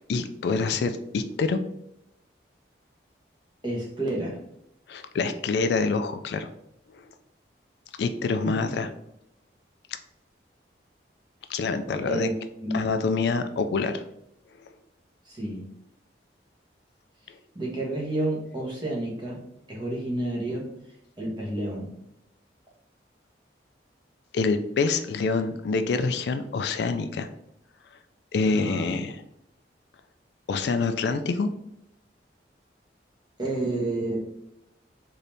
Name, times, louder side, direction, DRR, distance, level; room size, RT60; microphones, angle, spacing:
voice 1, 0.1-1.6 4.9-6.5 6.9-7.1 8.0-8.9 11.5-12.3 12.7-14.0 24.3-27.3 28.3-29.2 30.5-31.5, left 4 dB, 65° left, 9 dB, 0.3 m, -26 dB
voice 2, 3.6-4.4 8.4-8.7 12.1-12.3 12.6-12.9 15.2-15.6 17.5-19.4 19.7-20.7 21.2-22.0 28.5-29.0 33.4-34.2, right 1 dB, 25° right, -3 dB, 1.1 m, -30 dB
4.0 x 2.7 x 3.3 m, 0.79 s
head